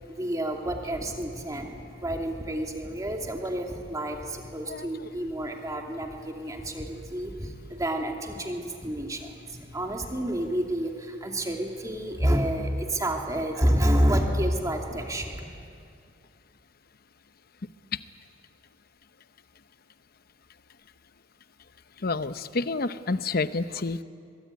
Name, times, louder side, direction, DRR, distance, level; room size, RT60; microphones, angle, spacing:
voice 1, 0.0-15.5, right 1 dB, 20° right, 2 dB, 2.6 m, -29 dB
voice 2, 22.0-24.0, left 3 dB, 50° left, 12 dB, 0.8 m, -29 dB
23.0 x 23.0 x 9.4 m, 2.4 s
head